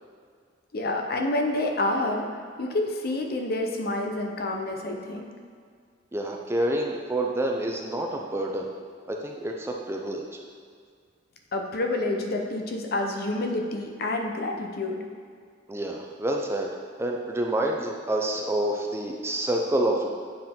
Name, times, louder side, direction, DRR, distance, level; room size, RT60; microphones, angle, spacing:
voice 1, 0.7-2.3 2.6-5.3 11.5-15.0, left 2 dB, 55° left, 3 dB, 0.7 m, -28 dB
voice 2, 6.1-8.7 9.1-10.2 15.7-16.7 17.0-20.1, right 1 dB, 15° right, 1 dB, 0.4 m, -28 dB
7.6 x 4.6 x 3.6 m, 2.1 s
head